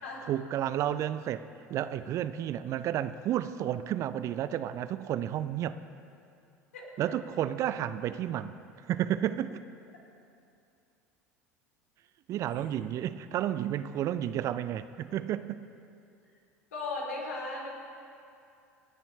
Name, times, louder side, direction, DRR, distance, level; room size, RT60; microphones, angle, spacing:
voice 1, 0.3-1.4 1.7-5.8 7.0-8.5 8.9-9.6 12.3-15.6, right 11 dB, 40° right, 13 dB, 0.5 m, -31 dB
voice 2, 16.7-17.7, left 3 dB, 70° left, -2 dB, 3.3 m, -37 dB
27.5 x 10.0 x 3.3 m, 2.5 s
figure-of-eight pair, 70°, 8 cm